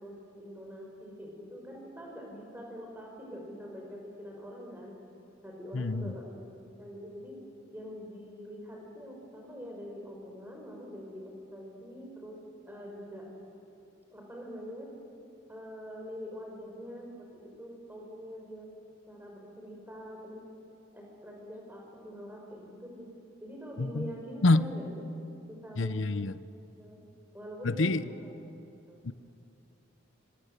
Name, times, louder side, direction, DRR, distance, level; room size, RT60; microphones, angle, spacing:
voice 1, 0.0-4.9 5.4-6.4 6.8-7.4 7.7-12.4 12.6-13.3 14.1-14.9 15.5-18.7 19.1-20.4 20.9-23.1 23.4-24.9 25.5-26.1 26.8-27.0 27.3-28.1 28.9-29.0, equal, 10° right, -1 dB, 5.5 m, -44 dB
voice 2, 5.7-6.1 23.8-24.1 24.4-24.7 25.8-26.3 27.6-28.0 29.0-29.1, left 2 dB, 70° left, 15 dB, 0.7 m, -26 dB
26.5 x 25.0 x 8.2 m, 2.6 s
head